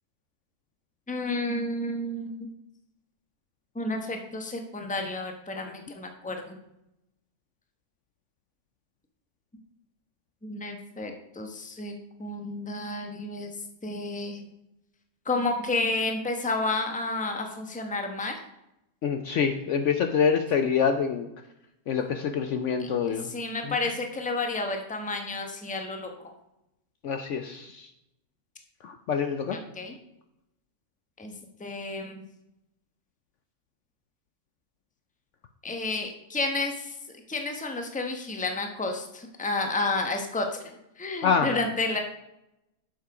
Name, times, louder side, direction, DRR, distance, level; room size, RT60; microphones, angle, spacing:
voice 1, 1.1-2.3 3.7-6.6 10.4-11.9 12.2-13.5 13.8-14.4 15.3-18.4 22.8-26.1 29.5-29.9 31.2-31.3 31.6-32.2 35.6-36.9 37.3-42.0, left 2 dB, 5° left, 4 dB, 0.8 m, -31 dB
voice 2, 19.0-21.3 21.9-23.3 27.0-27.9 28.8-29.6 41.2-41.6, left 6 dB, 65° left, 7 dB, 0.8 m, -26 dB
7.5 x 7.1 x 4.9 m, 0.86 s
omnidirectional pair, 1.6 m